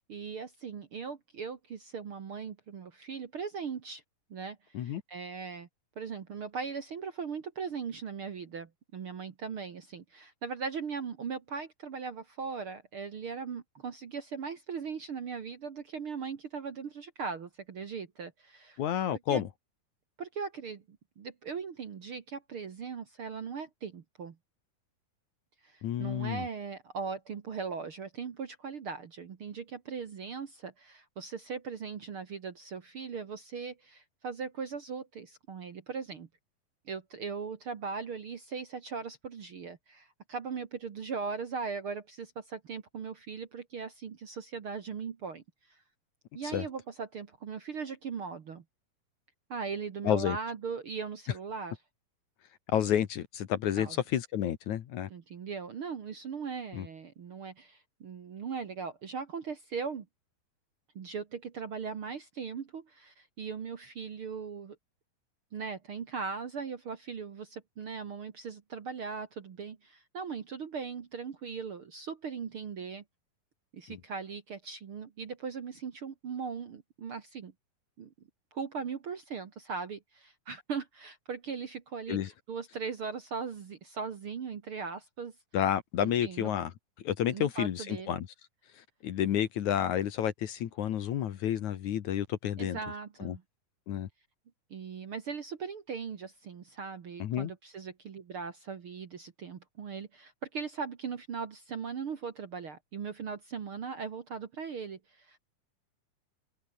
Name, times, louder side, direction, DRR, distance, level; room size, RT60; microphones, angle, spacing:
voice 1, 0.1-4.0 4.3-5.7 6.0-18.8 19.1-19.4 20.2-24.4 25.6-36.3 36.9-45.8 46.3-48.6 49.5-51.8 53.8-54.0 55.1-60.1 61.0-64.8 65.5-73.0 73.7-77.5 78.0-78.1 78.5-85.3 86.0-86.5 87.3-88.2 92.6-93.4 94.7-105.4, right 5 dB, 50° right, 1.9 m, -39 dB
voice 2, 18.8-19.5 25.8-26.5 46.5-46.7 50.0-50.4 52.7-55.1 56.7-56.9 73.9-74.0 82.1-82.3 85.5-86.7 87.0-88.3 89.0-92.8 93.2-93.4 93.9-94.1 97.2-97.5, left 10 dB, 60° left, 2.5 m, -30 dB
open air
omnidirectional pair, 4.2 m